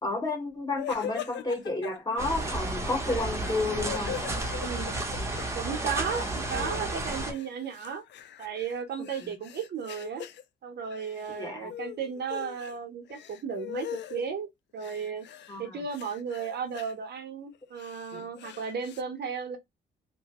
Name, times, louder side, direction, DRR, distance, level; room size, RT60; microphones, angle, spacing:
voice 1, 0.0-4.2 9.2-9.4 11.3-11.7 15.5-15.8 18.1-18.3, left 2 dB, 20° left, 1.2 m, -31 dB
sound 1, 0.8-2.2 3.0-5.4 5.7-7.0 7.3-10.4 10.9-11.4 11.7-12.8 13.1-14.2 14.8-15.6 15.9-16.9 17.5-19.0, left 10 dB, 65° left, 0.4 m, -41 dB
sound 2, 2.2-7.3, right 2 dB, 15° right, 0.8 m, -32 dB
voice 2, 4.6-5.0 5.5-8.0 8.4-10.3 10.6-15.3 15.6-19.6, right 6 dB, 55° right, 0.8 m, -35 dB
2.9 x 2.2 x 2.8 m
cardioid pair, 90°, 20 cm